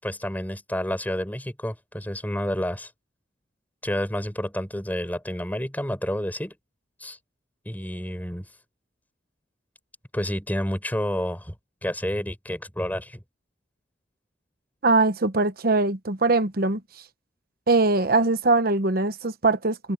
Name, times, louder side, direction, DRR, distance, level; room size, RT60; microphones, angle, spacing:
voice 1, 0.0-2.9 3.8-6.5 7.0-7.2 7.7-8.5 10.1-11.6 11.8-13.2, equal, 10° left, 7.2 m, -29 dB
voice 2, 14.8-16.8 17.7-19.9, right 3 dB, 55° right, 1.1 m, -22 dB
head